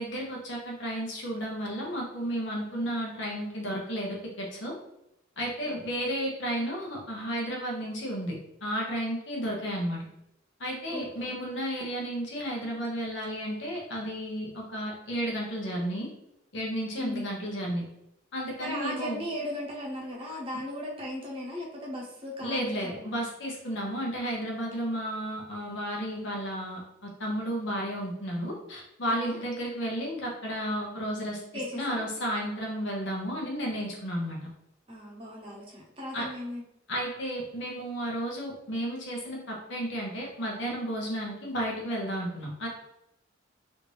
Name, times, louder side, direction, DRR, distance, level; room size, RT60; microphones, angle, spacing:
voice 1, 0.0-4.7 5.4-8.3 8.6-10.0 10.6-16.1 16.5-17.8 18.3-19.2 22.4-31.4 31.7-34.4 36.1-36.3 36.9-42.7, equal, 60° left, -1 dB, 1.0 m, -33 dB
voice 2, 10.9-11.3 17.0-17.3 18.6-23.3 29.2-29.4 31.5-32.0 34.9-36.6, equal, 25° right, -3 dB, 0.8 m, -37 dB
3.3 x 2.6 x 3.3 m, 0.82 s
head